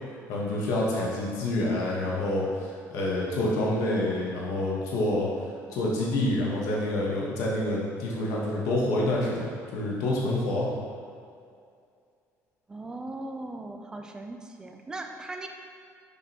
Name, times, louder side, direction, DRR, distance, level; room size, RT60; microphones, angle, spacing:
voice 1, 0.3-5.3 5.7-10.7, left 1 dB, 75° left, -4 dB, 1.2 m, -27 dB
voice 2, 12.7-15.5, right 2 dB, 15° right, 4 dB, 0.4 m, -38 dB
6.6 x 5.0 x 2.9 m, 2.3 s
cardioid pair, 175°, 6 cm